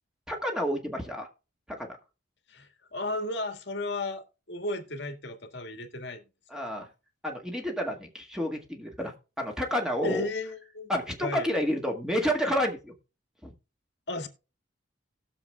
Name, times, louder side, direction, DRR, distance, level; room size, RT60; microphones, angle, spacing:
voice 1, 0.3-1.3 1.7-2.0 6.5-6.9 7.2-10.3 10.9-12.9 13.4-13.5, equal, 5° right, 1.9 m, -30 dB
voice 2, 2.5-6.2 10.0-10.9 11.2-11.5 14.1-14.3, left 2 dB, 60° left, 1.9 m, -34 dB
19.5 x 7.2 x 2.3 m
head